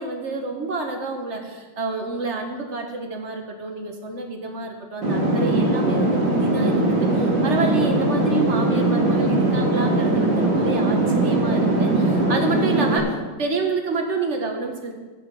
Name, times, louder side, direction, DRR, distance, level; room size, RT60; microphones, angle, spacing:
voice 1, 0.0-13.1 13.4-15.0, right 3 dB, 40° right, 4 dB, 1.6 m, -28 dB
sound 1, 5.0-13.0, right 2 dB, 85° right, 3.3 m, -20 dB
15.5 x 6.2 x 6.4 m, 1.3 s
omnidirectional pair, 1.9 m